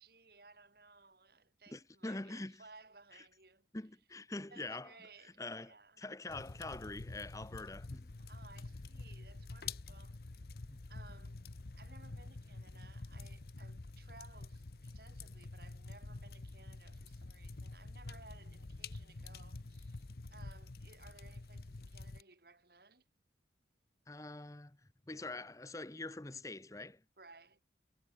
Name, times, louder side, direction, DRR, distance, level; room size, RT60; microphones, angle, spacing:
voice 1, 0.0-3.7 4.5-6.0 8.2-10.2 10.9-11.4 11.8-23.0 27.2-27.6, right 3 dB, 55° right, 3.1 m, -60 dB
voice 2, 1.7-2.6 3.1-3.2 3.7-4.9 5.2-8.1 10.7-10.8 24.1-24.8 25.1-27.0, left 2 dB, 20° left, 0.8 m, -45 dB
sound 1, 6.3-22.2, left 3 dB, 60° left, 0.8 m, -48 dB
head